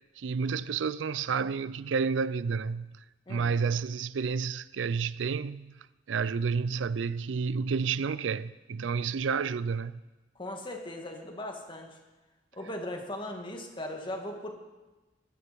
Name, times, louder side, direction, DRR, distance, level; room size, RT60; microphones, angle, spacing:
voice 1, 0.2-3.0 3.3-5.7 6.1-10.0, right 5 dB, 75° right, 0.4 m, -30 dB
voice 2, 3.3-3.6 10.4-12.0 12.5-14.5, left 1 dB, 25° left, 2.1 m, -38 dB
21.5 x 12.0 x 5.2 m
head